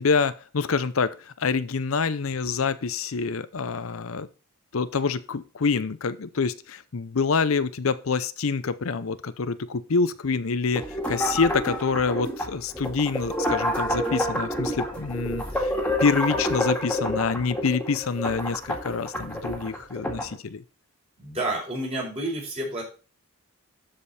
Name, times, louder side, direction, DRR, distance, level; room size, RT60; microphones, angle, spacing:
voice 1, 0.0-4.3 4.7-15.7 16.0-20.6, left 5 dB, 75° left, 14 dB, 0.7 m, -26 dB
sound 1, 10.7-20.3, equal, 5° left, 2.1 m, -29 dB
voice 2, 21.2-22.8, right 1 dB, 30° right, -2 dB, 4.4 m, -30 dB
12.5 x 5.2 x 4.2 m, 0.34 s
head